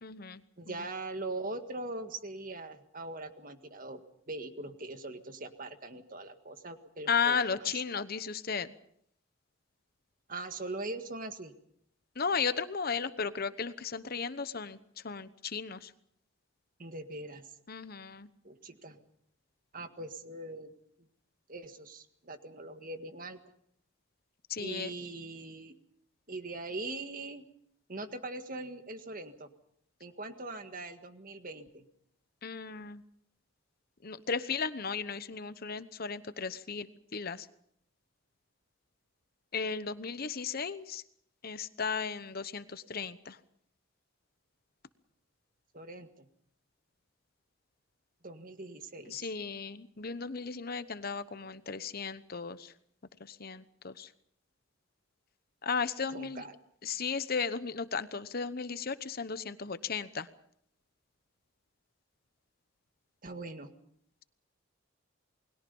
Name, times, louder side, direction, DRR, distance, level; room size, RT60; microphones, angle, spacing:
voice 1, 0.0-0.4 7.1-8.7 12.2-14.8 15.0-15.9 17.7-18.3 24.5-24.9 32.4-33.0 34.0-36.9 37.1-37.5 39.5-41.0 41.4-43.4 49.1-52.7 53.2-54.1 55.6-56.4 56.8-60.3, left 5 dB, 50° left, 13 dB, 1.0 m, -35 dB
voice 2, 0.6-7.7 10.3-11.5 16.8-17.5 18.4-19.0 19.7-20.7 21.5-23.4 24.6-25.7 26.3-27.4 27.9-29.5 30.0-31.8 45.7-46.3 48.2-49.3 56.1-56.5 63.2-63.7, right 2 dB, 45° right, 8 dB, 1.8 m, -41 dB
29.0 x 21.0 x 5.4 m, 0.69 s
head